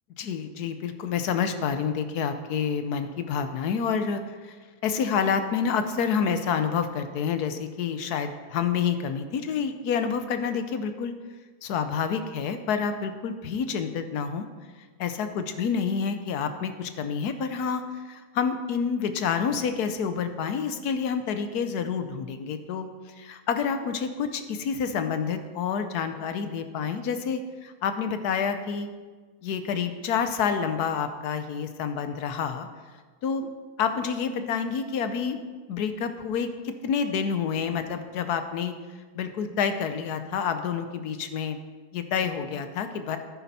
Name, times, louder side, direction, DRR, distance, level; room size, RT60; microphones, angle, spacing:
voice 1, 0.2-4.5 4.8-11.1 11.6-14.4 15.0-22.9 23.2-28.9 29.4-32.7 33.2-33.5 33.8-35.4 35.7-38.7 39.1-41.6 41.9-43.2, left 6 dB, 75° left, 9 dB, 1.3 m, -28 dB
10.0 x 9.4 x 4.2 m, 1.4 s
omnidirectional pair, 1.7 m